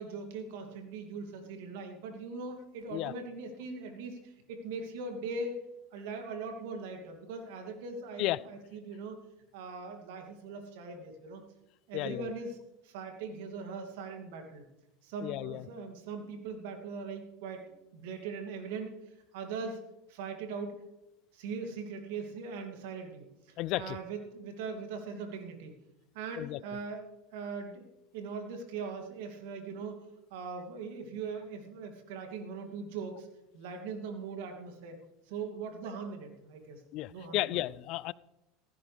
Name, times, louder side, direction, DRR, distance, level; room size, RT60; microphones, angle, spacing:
voice 1, 0.0-5.6 5.9-9.2 9.5-11.4 11.9-12.6 12.8-14.7 15.0-17.6 17.9-18.9 19.3-19.8 20.1-20.7 21.3-25.8 26.1-27.1 27.3-27.9 28.1-30.0 30.3-33.3 33.5-35.0 35.3-36.8 37.1-37.6, right 4 dB, 70° right, 3 dB, 2.8 m, -40 dB
voice 2, 11.9-12.3 15.2-15.7 23.6-24.0 26.4-26.6 36.9-38.1, left 17 dB, 55° left, 22 dB, 0.4 m, -33 dB
15.5 x 15.0 x 3.5 m, 0.92 s
hypercardioid pair, 85°, 0 cm